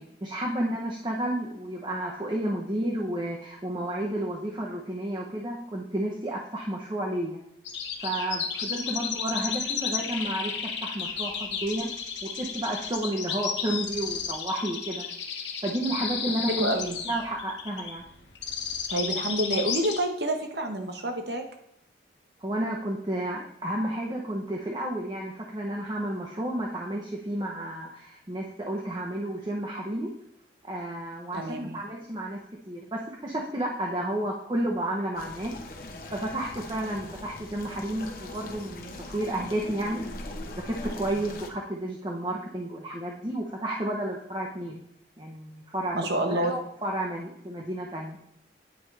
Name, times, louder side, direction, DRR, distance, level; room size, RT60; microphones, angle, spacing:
voice 1, 0.2-7.4 8.0-11.9 12.4-15.0 15.6-16.7 17.0-18.0 22.4-30.1 30.6-32.4 32.7-35.5 36.1-40.0 40.5-44.8 45.2-46.0 46.3-48.2, right 1 dB, 25° right, -2 dB, 0.8 m, -31 dB
sound 1, 7.6-20.0, left 7 dB, 80° left, 1.2 m, -33 dB
voice 2, 16.5-17.0 18.9-21.4 31.3-31.8 45.9-46.5, right 1 dB, 65° right, 4 dB, 1.1 m, -28 dB
sound 2, 35.1-41.5, left 2 dB, 50° left, 0.9 m, -40 dB
9.3 x 4.8 x 3.3 m, 0.80 s
head